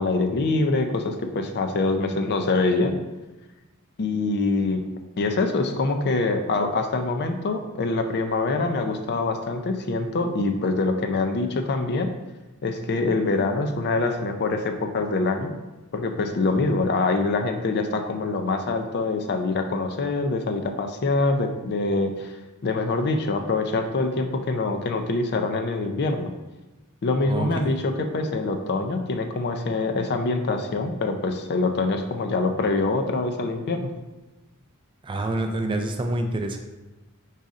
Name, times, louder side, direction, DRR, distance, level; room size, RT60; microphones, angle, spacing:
voice 1, 0.0-2.9 4.0-4.8 5.2-12.1 12.6-15.5 15.9-22.3 22.6-26.3 27.0-33.9, left 3 dB, 45° left, 6 dB, 0.4 m, -24 dB
voice 2, 35.0-36.6, right 1 dB, 20° right, 4 dB, 0.3 m, -27 dB
5.1 x 4.0 x 2.4 m, 1.1 s
head